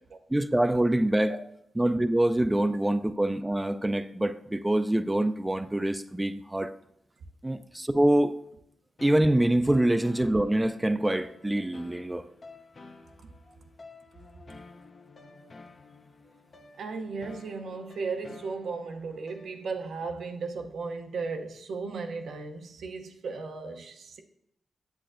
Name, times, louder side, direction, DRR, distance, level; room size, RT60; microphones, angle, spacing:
voice 1, 0.3-1.3 1.8-6.7 7.4-8.4 9.0-12.2, right 1 dB, 15° right, 0.4 m, -25 dB
sound 1, 9.0-20.0, left 3 dB, 50° left, 0.6 m, -51 dB
voice 2, 16.8-24.2, right 4 dB, 80° right, 0.6 m, -36 dB
8.4 x 7.6 x 2.5 m
cardioid pair, 65°, 0 cm